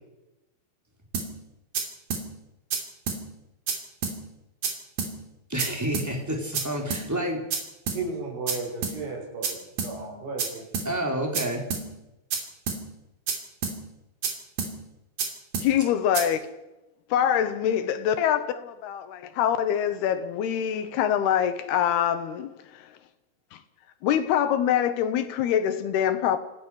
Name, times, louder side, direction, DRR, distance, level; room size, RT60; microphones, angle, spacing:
sound 1, 1.1-1.3 1.7-1.8 2.1-2.2 2.7-2.8 3.1-3.2 3.7-3.8 4.0-4.2 4.6-4.7 5.0-5.1 5.6-5.7 5.9-6.1 6.5-6.6 6.9-7.0 7.5-7.6 7.9-8.0 8.5-8.6 8.8-9.0 9.4-9.5 9.8-9.9 10.4-10.5 10.7-10.9 11.3-11.4 11.7-11.8 12.3-12.4 12.7-12.8 13.3-13.4 13.6-13.8 14.2-14.3 14.6-14.7 15.2-15.3 15.5-15.7 16.1-16.2, right 5 dB, 65° right, 4.5 m, -28 dB
voice 1, 5.5-7.5 10.8-11.6, right 1 dB, 5° right, 3.5 m, -29 dB
voice 2, 7.9-9.6 9.8-10.6, right 3 dB, 90° right, 8.0 m, -34 dB
voice 3, 15.6-16.5 17.1-22.8 23.5-23.6 24.0-26.4, left 9 dB, 80° left, 3.3 m, -24 dB
26.5 x 16.0 x 6.5 m
omnidirectional pair, 4.5 m